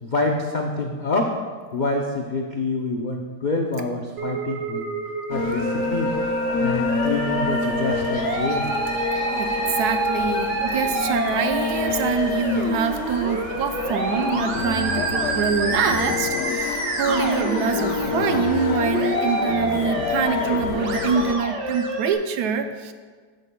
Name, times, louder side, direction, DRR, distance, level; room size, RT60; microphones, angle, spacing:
voice 1, 0.0-1.3 1.7-4.8 5.3-6.1 6.6-8.8, left 2 dB, 80° left, 1 dB, 0.4 m, -26 dB
Musical instrument, 4.2-22.1, right 3 dB, 50° right, 1.0 m, -28 dB
sound 1, 5.3-21.4, left 6 dB, 65° left, 0.8 m, -28 dB
voice 2, 9.4-22.9, right 7 dB, 75° right, 8 dB, 1.1 m, -25 dB
13.0 x 8.4 x 2.3 m, 1.5 s
omnidirectional pair, 1.8 m